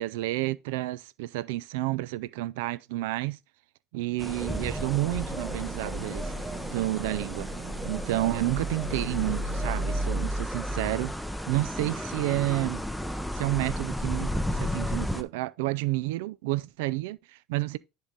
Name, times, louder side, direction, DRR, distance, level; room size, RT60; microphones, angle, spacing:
voice 1, 0.0-3.4 3.9-7.5 7.8-11.1 11.5-12.8 13.3-17.8, right 18 dB, 85° right, 0.3 m, -30 dB
sound 1, 4.2-15.2, equal, ahead, 0.7 m, -32 dB
sound 2, 4.5-9.8, right 9 dB, 65° right, 1.2 m, -41 dB
10.0 x 3.8 x 4.0 m
supercardioid pair, 100°, 0 cm